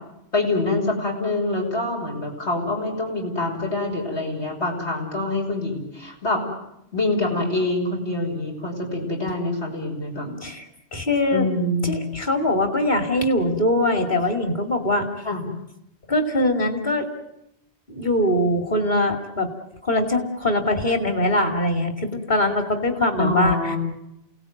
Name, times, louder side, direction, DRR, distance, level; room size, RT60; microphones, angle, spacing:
voice 1, 0.3-6.4 6.9-10.3 11.3-12.1 15.2-15.4 23.2-23.8, left 2 dB, 75° left, 0 dB, 6.0 m, -25 dB
voice 2, 10.9-11.5 11.8-15.1 16.1-17.1 17.9-19.5 19.8-23.8, left 1 dB, 45° left, 6 dB, 3.1 m, -22 dB
28.5 x 18.5 x 9.4 m, 0.84 s
omnidirectional pair, 1.1 m